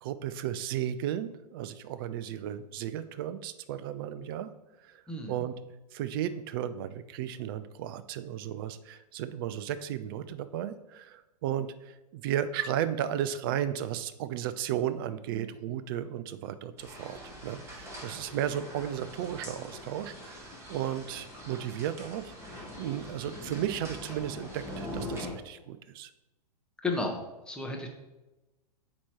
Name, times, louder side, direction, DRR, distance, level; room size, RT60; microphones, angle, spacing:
voice 1, 0.0-4.5 4.8-5.0 5.3-5.5 5.9-26.1, right 10 dB, 35° right, 14 dB, 0.4 m, -34 dB
voice 2, 5.1-5.4 26.8-27.2 27.5-27.9, left 2 dB, 5° left, 1 dB, 0.8 m, -32 dB
sound 1, 16.8-25.3, left 1 dB, 15° right, 1.3 m, -43 dB
8.3 x 2.9 x 4.4 m, 1.0 s
figure-of-eight pair, 110°, 21 cm